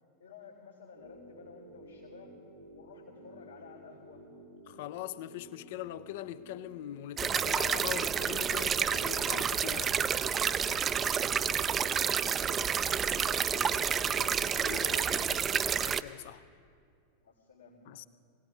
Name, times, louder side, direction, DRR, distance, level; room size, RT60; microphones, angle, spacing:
voice 1, 0.2-2.4 2.7-4.2 11.0-14.5 17.2-17.8, left 5 dB, 80° left, 3.1 m, -52 dB
sound 1, 0.9-15.5, right 1 dB, 90° right, 2.2 m, -54 dB
voice 2, 4.7-10.1 14.5-16.4 17.9-18.1, left 13 dB, 50° left, 0.5 m, -42 dB
sound 2, 7.2-16.0, right 7 dB, 25° right, 0.4 m, -29 dB
21.0 x 17.5 x 3.6 m
figure-of-eight pair, 90°, 0 cm